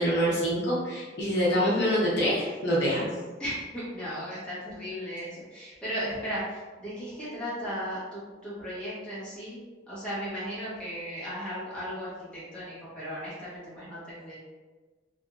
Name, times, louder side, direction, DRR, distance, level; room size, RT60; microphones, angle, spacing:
voice 1, 0.0-3.1, equal, 60° left, -6 dB, 0.7 m, -25 dB
voice 2, 3.4-14.4, equal, 5° left, -11 dB, 1.0 m, -36 dB
2.9 x 2.4 x 2.4 m, 1.3 s
head